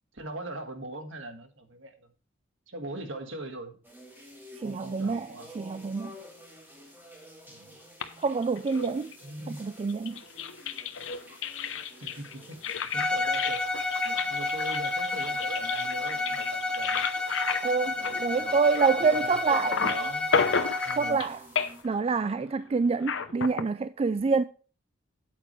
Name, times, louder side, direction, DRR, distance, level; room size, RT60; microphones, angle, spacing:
voice 1, 0.1-2.1 2.7-3.8 4.6-5.5 7.5-7.8 9.2-9.7 12.0-12.6 12.9-13.6 13.9-17.1 18.0-18.6 18.9-20.3 20.8-21.2, right 1 dB, 70° right, 1.8 m, -41 dB
sound 1, 3.8-21.8, equal, 10° right, 4.0 m, -52 dB
voice 2, 4.6-6.2 8.2-9.1 9.5-10.2 17.6-19.8 20.9-21.5 21.8-24.4, right 4 dB, 30° right, 0.3 m, -27 dB
sound 2, 8.0-9.3 9.9-19.2 19.5-21.3 21.6-22.0 23.0-23.6, left 6 dB, 70° left, 0.9 m, -32 dB
Bowed string instrument, 12.9-21.3, left 2 dB, 5° left, 1.1 m, -30 dB
8.8 x 8.4 x 3.2 m
head